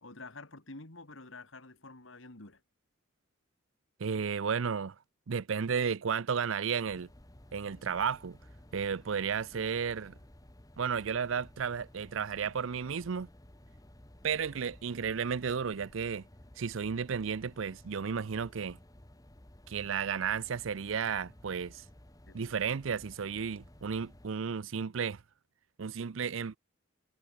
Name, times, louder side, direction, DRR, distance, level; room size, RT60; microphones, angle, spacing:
voice 1, 0.0-2.6 9.5-9.7 22.3-22.8, left 2 dB, 70° left, 2.8 m, -49 dB
voice 2, 4.0-5.0 5.3-7.1 7.5-8.4 8.7-10.1 10.8-13.3 14.2-16.2 16.6-18.8 19.7-21.8 22.3-25.2 25.8-26.6, right 6 dB, 70° right, 0.5 m, -33 dB
sound 1, 6.9-24.3, left 1 dB, 15° left, 1.5 m, -56 dB
head